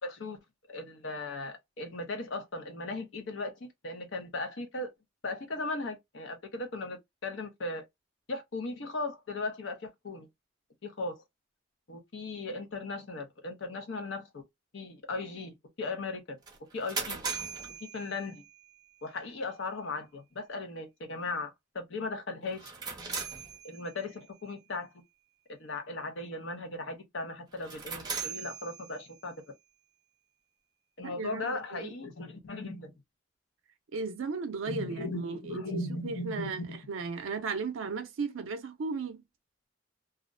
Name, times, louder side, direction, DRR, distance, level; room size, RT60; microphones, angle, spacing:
voice 1, 0.0-0.4 0.7-4.9 5.2-7.8 8.3-10.3 10.8-11.2 11.9-14.4 14.7-16.4 16.7-17.2 17.9-18.4 19.0-22.7 23.6-25.0 25.5-29.3 31.0-32.9 34.7-36.8, left 2 dB, 75° left, 0.7 m, -37 dB
sound 1, 16.5-18.7 22.5-24.2 27.5-29.3, right 5 dB, 20° right, 0.6 m, -39 dB
voice 2, 31.0-31.9 33.9-36.6 36.9-39.2, right 4 dB, 90° right, 0.4 m, -35 dB
2.4 x 2.0 x 2.5 m
head